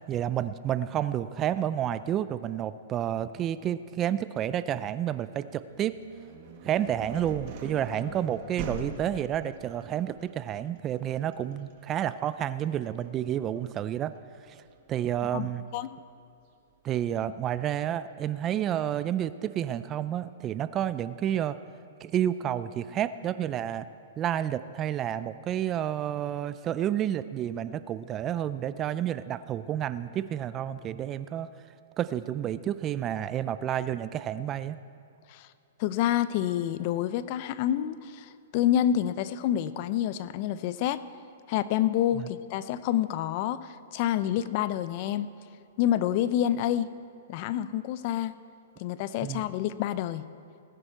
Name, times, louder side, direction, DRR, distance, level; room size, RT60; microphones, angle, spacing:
voice 1, 0.1-6.0 6.6-14.1 14.5-14.6 14.9-15.6 16.8-21.6 22.0-23.9 24.2-31.5 32.0-34.8 42.1-42.3 49.2-49.5, right 10 dB, 25° right, 14 dB, 0.4 m, -30 dB
sound 1, 5.7-15.5, right 4 dB, 45° right, 1.6 m, -43 dB
voice 2, 35.8-41.0 41.5-45.3 45.8-46.9 47.3-48.4 48.8-50.3, left 11 dB, 45° left, 15 dB, 0.5 m, -28 dB
19.0 x 10.0 x 4.6 m, 2.6 s
hypercardioid pair, 135°, 0 cm